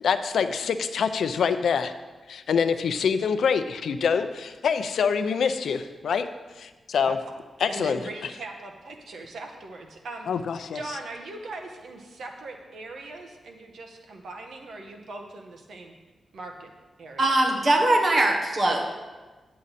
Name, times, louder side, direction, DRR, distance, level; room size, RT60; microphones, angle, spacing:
voice 1, 0.0-1.9 2.3-6.3 6.6-7.2 7.6-8.0 10.3-10.8, left 6 dB, 85° left, 10 dB, 0.5 m, -25 dB
voice 2, 7.7-10.3 10.7-15.9 16.3-16.7 17.0-17.2, right 2 dB, 75° right, 3 dB, 1.1 m, -40 dB
voice 3, 17.2-18.8, right 1 dB, 35° right, 2 dB, 1.2 m, -21 dB
9.6 x 7.6 x 4.1 m, 1.3 s
wide cardioid pair, 170°, 0 cm